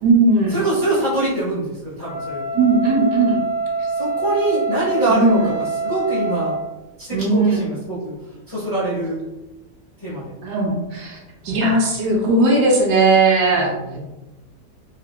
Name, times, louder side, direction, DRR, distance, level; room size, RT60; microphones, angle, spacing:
voice 1, 0.0-0.6 2.5-3.4 5.1-5.5 7.1-7.7 10.4-11.2 11.4-13.7, right 3 dB, 80° right, -2 dB, 1.2 m, -17 dB
voice 2, 0.5-2.4 4.0-6.5 7.0-8.0 8.5-9.2 10.0-10.2 11.4-11.7 13.7-14.0, right 1 dB, 25° left, -10 dB, 0.7 m, -24 dB
Wind instrument woodwind instrument, 2.0-6.7, right 3 dB, 85° left, 0.5 m, -25 dB
2.8 x 2.4 x 2.2 m, 1.1 s
omnidirectional pair, 1.8 m